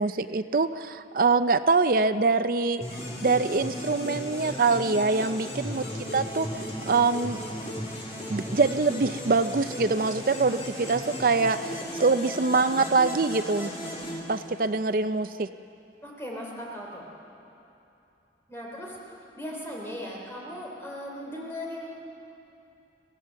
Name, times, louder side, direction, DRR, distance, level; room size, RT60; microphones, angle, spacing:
voice 1, 0.0-5.8 6.1-6.5 6.9-7.4 8.3-13.7 14.3-15.5, right 4 dB, 50° right, 11 dB, 0.5 m, -24 dB
sound 1, 2.8-14.9, equal, 35° left, 3.7 m, -36 dB
voice 2, 14.8-15.1 16.0-17.0 18.5-21.9, equal, 15° left, -2 dB, 3.2 m, -38 dB
26.0 x 16.0 x 7.5 m, 2.8 s
head